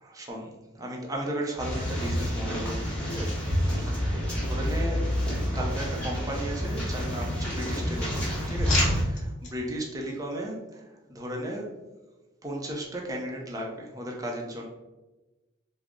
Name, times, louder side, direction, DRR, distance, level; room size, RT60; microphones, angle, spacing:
voice 1, 0.1-5.0 5.5-11.7 12.4-14.7, right 1 dB, 15° right, -1 dB, 0.5 m, -35 dB
sound 1, 1.6-9.0, equal, 5° left, 1.0 m, -28 dB
sound 2, 5.6-6.7 7.1-7.8 8.1-9.5 10.1-10.4, left 3 dB, 40° left, 0.7 m, -36 dB
3.5 x 2.0 x 3.5 m, 1.1 s
head